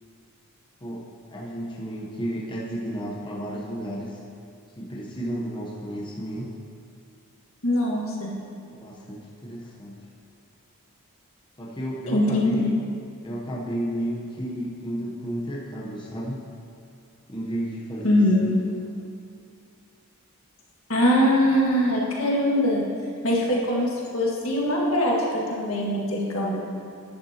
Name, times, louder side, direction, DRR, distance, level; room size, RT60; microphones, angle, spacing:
voice 1, 0.8-4.2 4.8-6.5 8.8-10.0 11.6-12.8 13.2-16.4 17.3-18.2, equal, 20° left, -5 dB, 0.9 m, -32 dB
voice 2, 7.6-8.3 12.1-12.7 18.0-18.5 20.9-22.8 23.2-26.6, left 1 dB, 65° left, -3 dB, 1.8 m, -22 dB
10.5 x 10.5 x 2.9 m, 2.4 s
head